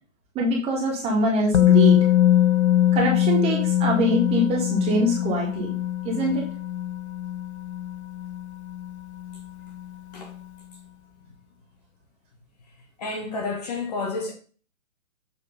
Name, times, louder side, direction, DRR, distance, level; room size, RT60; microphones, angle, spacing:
voice 1, 0.3-2.0 2.9-5.7 6.0-6.5, right 1 dB, 15° right, 1.6 m, -23 dB
Musical instrument, 1.5-9.4 9.7-9.9, left 12 dB, 55° left, 0.4 m, -22 dB
voice 2, 13.0-14.3, left 3 dB, 30° left, 1.0 m, -30 dB
7.1 x 3.3 x 5.3 m
figure-of-eight pair, 135°, 42 cm